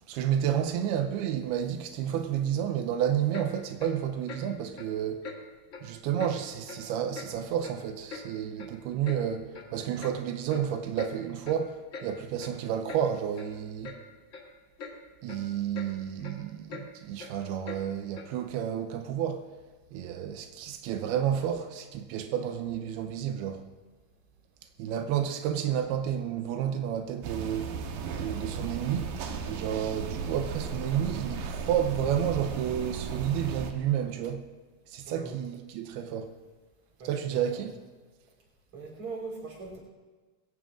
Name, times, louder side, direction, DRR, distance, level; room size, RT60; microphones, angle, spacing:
voice 1, 0.1-5.3 5.8-14.0 15.2-19.5 19.9-23.6 24.8-27.8 28.2-29.1 29.4-34.5 34.9-36.3 37.0-37.7, right 9 dB, 90° right, 2.7 m, -31 dB
Clock, 3.3-3.5 3.8-3.9 4.3-4.4 4.8-4.9 5.2-5.4 5.7-5.9 6.2-6.3 6.7-6.8 7.2-7.3 7.6-8.2 8.6-8.7 9.0-9.2 9.5-9.7 10.0-10.2 10.5-10.6 11.0-11.1 11.4-11.6 11.9-12.1 12.4-12.5 12.9-13.0 13.4-13.5 13.8-14.0 14.3-14.5 14.8-14.9 15.3-15.4 15.7-15.9 16.2-16.3 16.7-16.8 17.2-17.3 17.6-17.8 18.2-18.3, left 5 dB, 55° left, 1.3 m, -42 dB
sound 1, 27.2-33.7, right 5 dB, 70° right, 2.6 m, -35 dB
voice 2, 35.1-35.4 37.0-37.7 38.7-39.8, right 3 dB, 35° right, 4.0 m, -41 dB
21.0 x 17.0 x 2.5 m
omnidirectional pair, 4.5 m